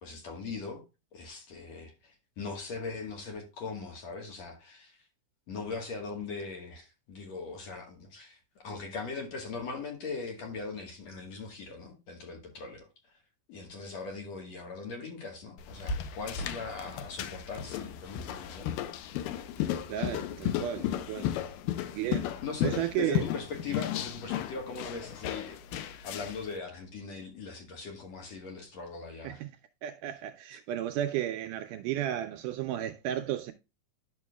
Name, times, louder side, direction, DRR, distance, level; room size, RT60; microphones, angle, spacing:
voice 1, 0.0-0.8 1.1-5.0 5.5-12.9 13.5-18.8 22.4-29.4, left 4 dB, 60° left, 2.3 m, -40 dB
sound 1, 15.6-26.5, left 10 dB, 80° left, 2.3 m, -34 dB
voice 2, 19.9-21.3 21.9-22.3 22.6-23.2 29.2-29.5 29.8-33.5, right 12 dB, 80° right, 1.9 m, -33 dB
11.0 x 6.0 x 2.2 m
omnidirectional pair, 4.0 m